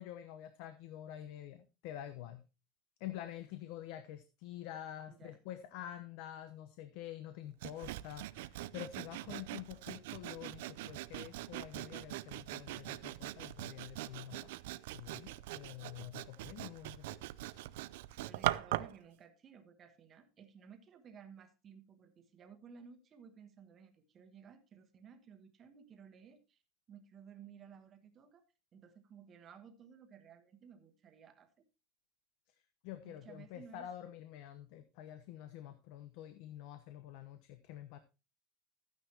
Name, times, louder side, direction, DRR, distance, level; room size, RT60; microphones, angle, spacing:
voice 1, 0.0-2.4 3.0-14.5 14.9-17.1 17.5-17.7 32.8-38.0, left 12 dB, 55° left, 10 dB, 0.9 m, -47 dB
Sawing, 7.6-19.0, right 16 dB, 75° right, 0.5 m, -42 dB
voice 2, 18.2-26.6 26.9-28.4 28.7-31.6 33.0-33.9, right 7 dB, 25° right, 7 dB, 1.3 m, -57 dB
13.0 x 9.6 x 2.9 m, 0.29 s
supercardioid pair, 170°, 0 cm